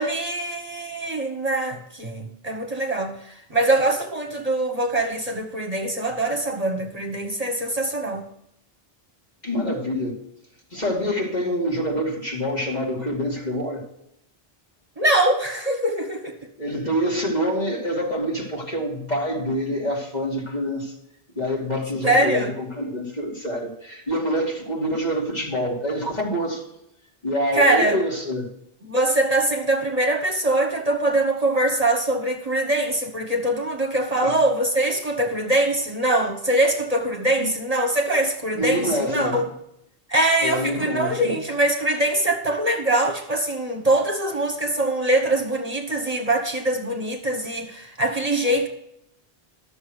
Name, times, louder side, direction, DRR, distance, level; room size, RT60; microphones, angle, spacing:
voice 1, 0.0-8.2 15.0-16.4 22.0-22.5 27.5-28.0 28.8-39.4 40.1-48.7, right 1 dB, 40° right, 4 dB, 1.4 m, -23 dB
voice 2, 9.4-10.3 10.7-13.8 16.6-20.9 21.4-26.6 27.2-28.5 34.2-34.4 37.4-37.5 38.5-39.4 40.4-41.4, equal, 40° left, -1 dB, 2.8 m, -26 dB
12.5 x 7.1 x 6.4 m, 0.78 s
omnidirectional pair, 1.0 m